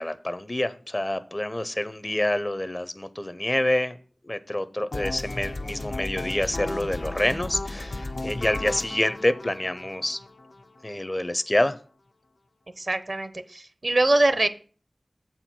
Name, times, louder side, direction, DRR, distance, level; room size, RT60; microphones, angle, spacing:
voice 1, 0.0-4.0 4.2-10.2 10.8-11.8, left 1 dB, 30° left, 14 dB, 0.6 m, -27 dB
sound 1, 4.9-10.9, left 2 dB, 75° left, 0.7 m, -34 dB
voice 2, 12.8-14.5, right 2 dB, 55° right, 12 dB, 0.7 m, -23 dB
7.6 x 4.5 x 6.0 m, 0.41 s
wide cardioid pair, 55°, 0 cm